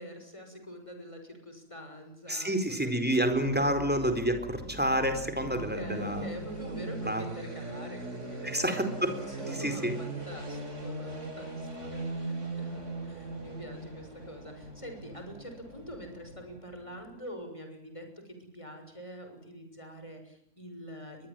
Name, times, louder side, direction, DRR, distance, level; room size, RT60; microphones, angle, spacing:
voice 1, 0.0-3.8 5.4-21.3, equal, 20° left, 5 dB, 6.7 m, -45 dB
voice 2, 2.3-6.2 7.1-7.2 8.4-9.1 9.6-10.0, right 1 dB, 5° right, 7 dB, 4.2 m, -28 dB
sound 1, 3.1-17.0, right 2 dB, 60° right, 4.9 m, -40 dB
23.0 x 22.5 x 9.1 m, 0.69 s
omnidirectional pair, 1.4 m